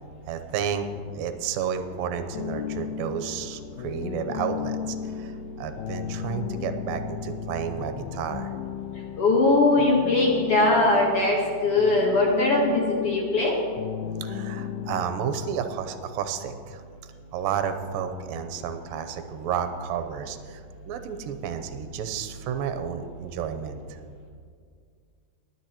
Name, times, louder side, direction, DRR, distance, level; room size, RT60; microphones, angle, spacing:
voice 1, 0.3-0.9 1.1-8.5 14.2-16.8 17.3-24.0, right 7 dB, 80° right, 8 dB, 2.3 m, -31 dB
sound 1, 2.3-15.0, left 8 dB, 80° left, 2.2 m, -34 dB
voice 2, 9.2-13.5, left 2 dB, 65° left, -2 dB, 1.5 m, -21 dB
20.5 x 9.3 x 2.9 m, 2.1 s
omnidirectional pair, 4.5 m